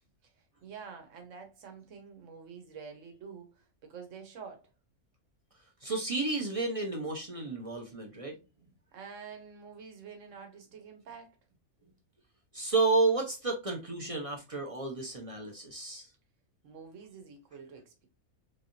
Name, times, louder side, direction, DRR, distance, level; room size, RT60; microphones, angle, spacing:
voice 1, 0.6-4.7 8.9-11.4 16.6-18.1, right 6 dB, 60° right, 1.3 m, -48 dB
voice 2, 5.8-8.4 12.5-16.1, right 3 dB, 35° right, 0.5 m, -31 dB
3.3 x 3.2 x 2.6 m
omnidirectional pair, 1.5 m